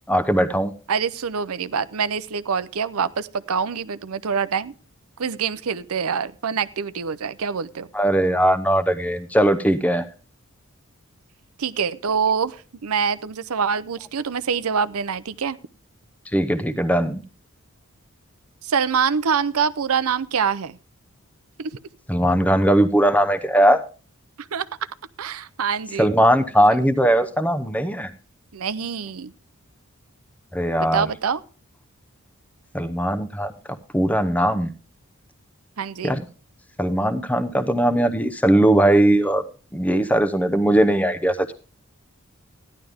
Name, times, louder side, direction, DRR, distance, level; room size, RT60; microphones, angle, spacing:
voice 1, 0.1-0.7 7.9-10.0 16.3-17.2 22.1-23.8 26.0-28.1 30.5-31.1 32.7-34.7 36.0-36.2 36.8-39.4 39.7-41.5, right 1 dB, 5° left, 9 dB, 0.8 m, -19 dB
voice 2, 0.9-4.7 5.2-7.9 11.6-15.6 18.6-20.8 21.6-21.7 24.4-24.7 25.2-26.1 28.5-29.3 30.8-31.4 35.8-36.1, right 6 dB, 85° right, 14 dB, 0.6 m, -25 dB
15.0 x 11.0 x 3.5 m, 0.35 s
head